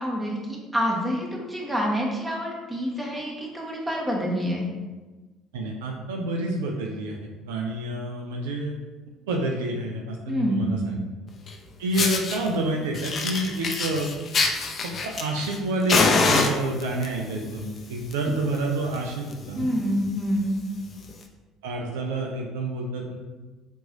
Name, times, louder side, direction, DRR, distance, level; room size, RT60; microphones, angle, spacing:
voice 1, 0.0-4.7 10.3-10.7 19.5-20.6, equal, 15° right, -2 dB, 1.2 m, -27 dB
voice 2, 5.5-8.7 9.3-11.0 11.8-14.1 14.8-19.7 21.6-23.1, right 2 dB, 80° right, 1 dB, 0.5 m, -28 dB
Fire, 11.5-11.6 11.9-12.4 12.9-15.6 15.9-17.1 17.9-18.1 18.4-18.5 18.9-19.0 19.3-19.5 20.1-20.2 21.1-21.2, left 4 dB, 45° left, 0.5 m, -24 dB
5.3 x 3.0 x 2.5 m, 1.2 s
hypercardioid pair, 60°, 0 cm